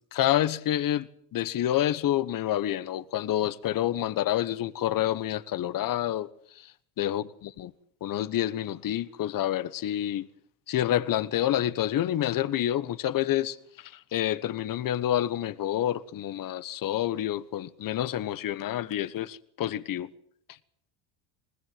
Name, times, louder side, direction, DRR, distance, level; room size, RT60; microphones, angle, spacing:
voice 1, 0.1-6.3 6.6-6.7 7.0-7.7 8.0-10.3 10.7-20.1, left 12 dB, 45° left, 1.2 m, -28 dB
20.5 x 20.0 x 7.7 m
supercardioid pair, 90°, 47 cm